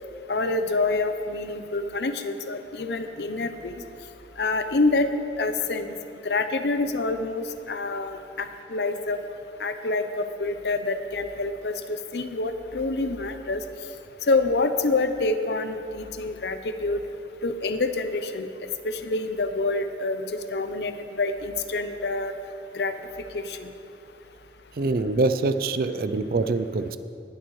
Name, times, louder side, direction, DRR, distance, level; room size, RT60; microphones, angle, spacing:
voice 1, 0.3-3.8 4.4-5.1 5.4-5.9 6.2-9.2 9.6-11.7 12.1-13.6 14.3-17.0 17.4-18.5 18.8-20.2 20.5-20.9 21.2-22.3 22.7-22.9 23.3-23.7, left 3 dB, 70° left, 9 dB, 0.7 m, -27 dB
voice 2, 24.8-27.0, right 3 dB, 55° right, 12 dB, 0.4 m, -24 dB
20.0 x 8.5 x 3.2 m, 2.8 s
head